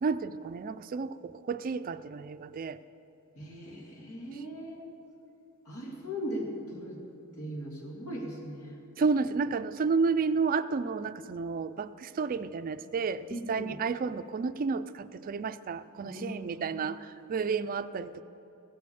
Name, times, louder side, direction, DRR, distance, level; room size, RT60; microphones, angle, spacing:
voice 1, 0.0-2.8 9.0-18.2, right 5 dB, 40° right, 13 dB, 0.4 m, -31 dB
voice 2, 3.4-4.8 5.7-7.0 7.3-8.8 13.3-13.8 16.0-16.8, equal, 85° left, -1 dB, 2.4 m, -39 dB
16.0 x 8.4 x 7.0 m, 2.9 s
head